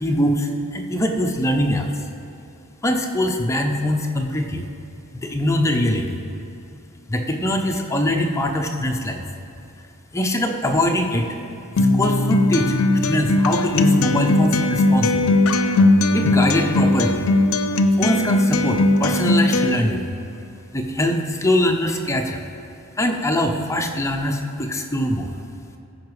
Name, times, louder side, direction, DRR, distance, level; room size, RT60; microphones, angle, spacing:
voice 1, 0.0-1.9 2.8-4.7 5.2-6.2 7.1-9.2 10.1-11.3 11.9-12.7 13.0-15.3 16.1-17.2 18.0-20.1 20.7-22.4 23.0-25.3, left 1 dB, 15° left, 3 dB, 0.7 m, -22 dB
Acoustic guitar, 11.8-19.8, left 2 dB, 70° left, 0.5 m, -18 dB
14.5 x 4.9 x 4.8 m, 2.7 s
head